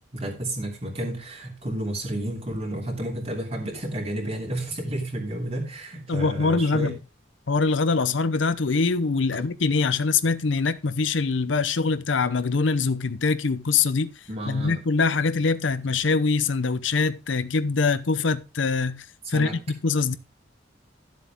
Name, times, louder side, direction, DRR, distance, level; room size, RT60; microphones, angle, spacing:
voice 1, 0.1-6.9 14.3-14.8 19.3-19.6, right 1 dB, 35° right, 3.0 m, -31 dB
voice 2, 6.1-7.0 7.5-14.1 14.5-20.2, left 4 dB, 75° left, 0.7 m, -23 dB
12.5 x 7.5 x 3.6 m
head